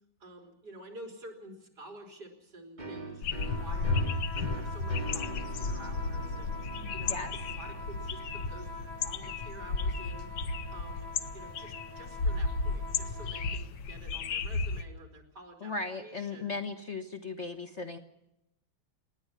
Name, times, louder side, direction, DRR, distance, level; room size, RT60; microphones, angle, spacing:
voice 1, 0.2-4.1 4.5-6.6 6.9-8.8 9.0-10.3 10.7-11.1 11.3-15.7 16.0-16.5, right 2 dB, 55° right, 2 dB, 4.3 m, -49 dB
sound 1, 2.8-10.3, right 3 dB, 25° right, 1.6 m, -45 dB
sound 2, 3.2-14.8, left 4 dB, 70° left, 1.5 m, -33 dB
sound 3, 3.4-13.6, left 2 dB, 80° right, 5.3 m, -46 dB
voice 2, 15.6-18.0, left 3 dB, 40° left, 6 dB, 1.3 m, -37 dB
27.5 x 10.5 x 9.8 m, 0.85 s
omnidirectional pair, 2.1 m